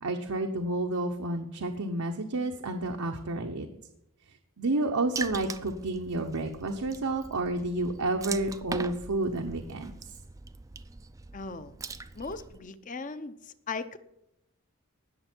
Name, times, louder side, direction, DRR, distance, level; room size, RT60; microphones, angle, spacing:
voice 1, 0.0-3.7 4.6-9.9, right 2 dB, 85° right, 3 dB, 0.9 m, -30 dB
Water / Splash splatter, 5.2-12.6, right 4 dB, 15° right, 0.3 m, -41 dB
voice 2, 11.3-11.7 12.1-14.0, left 4 dB, 35° left, 12 dB, 0.6 m, -38 dB
18.0 x 6.8 x 4.5 m, 0.84 s
head